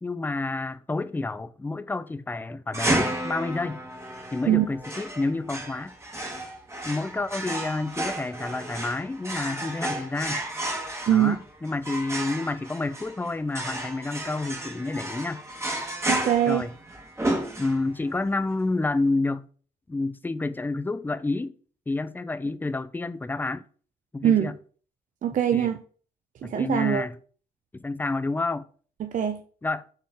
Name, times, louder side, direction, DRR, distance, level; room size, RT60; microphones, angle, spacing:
voice 1, 0.0-3.8 4.3-5.9 6.8-10.4 11.1-15.4 16.5-16.7 17.6-19.5 19.9-21.5 21.9-23.6 24.1-24.6 25.5-25.7 26.4-27.1 27.7-28.6 29.6-29.8, left 3 dB, 10° left, 0.3 m, -29 dB
sound 1, 2.7-18.1, right 1 dB, 15° right, 1.1 m, -32 dB
voice 2, 16.1-16.6 24.2-24.5 25.2-25.8 26.4-27.1 29.0-29.4, right 10 dB, 55° right, 0.4 m, -22 dB
4.3 x 3.2 x 3.5 m
cardioid pair, 80°, 16 cm